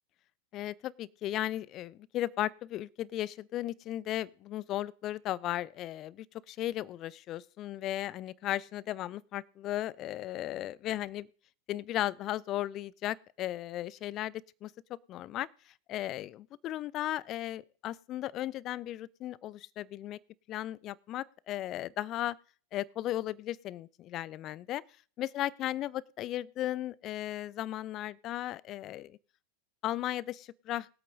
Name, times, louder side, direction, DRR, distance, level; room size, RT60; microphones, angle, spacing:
voice 1, 0.5-11.3 11.7-14.7 15.1-20.2 20.5-22.4 22.7-24.8 25.2-29.2 29.8-30.9, left 13 dB, 35° left, 23 dB, 0.5 m, -36 dB
21.5 x 8.4 x 2.6 m, 0.42 s
figure-of-eight pair, 90°, 0 cm